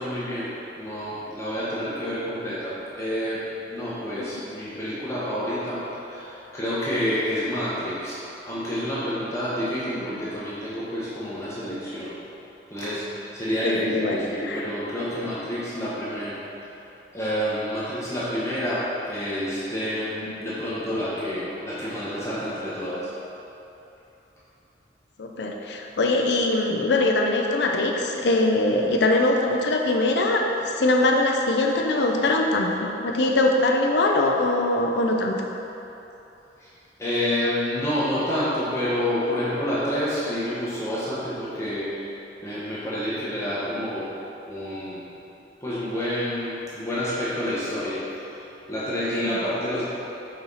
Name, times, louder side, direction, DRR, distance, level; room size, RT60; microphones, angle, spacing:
voice 1, 0.0-3.4 3.7-5.8 6.1-8.2 8.5-12.1 12.7-16.4 17.1-23.1 36.6-36.7 37.0-42.1 42.4-44.1 44.4-45.0 45.6-48.0 48.7-49.8, equal, 15° left, -10 dB, 0.9 m, -28 dB
voice 2, 13.6-14.6 20.2-20.3 25.2-35.5 49.3-49.4, left 2 dB, 70° left, 1 dB, 0.5 m, -22 dB
5.6 x 4.3 x 4.0 m, 3.0 s
head